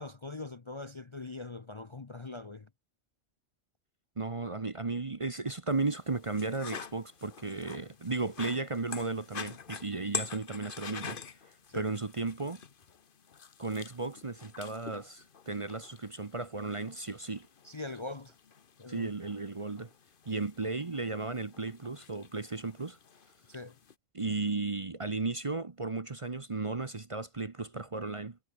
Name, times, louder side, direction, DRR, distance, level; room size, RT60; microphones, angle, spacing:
voice 1, 0.0-2.7 11.7-11.9 17.6-18.4 18.8-19.1 23.5-23.8, left 3 dB, 30° left, 0.7 m, -42 dB
voice 2, 4.2-11.2 11.7-12.6 13.6-17.5 18.9-19.9 20.3-23.0 24.1-28.4, right 3 dB, 30° right, 0.9 m, -35 dB
sound 1, 5.7-23.9, left 6 dB, 50° left, 1.2 m, -46 dB
omnidirectional pair, 1.3 m